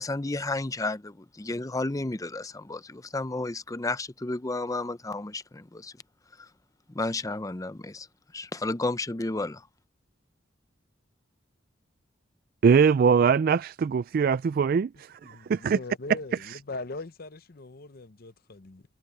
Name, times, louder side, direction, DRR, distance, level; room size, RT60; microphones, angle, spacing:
voice 1, 0.0-5.9 6.4-6.5 6.9-8.1 8.3-9.7, left 2 dB, 20° left, 0.6 m, -32 dB
voice 2, 12.6-15.8, right 6 dB, 50° right, 0.3 m, -22 dB
voice 3, 15.2-18.8, left 3 dB, 50° left, 0.8 m, -40 dB
head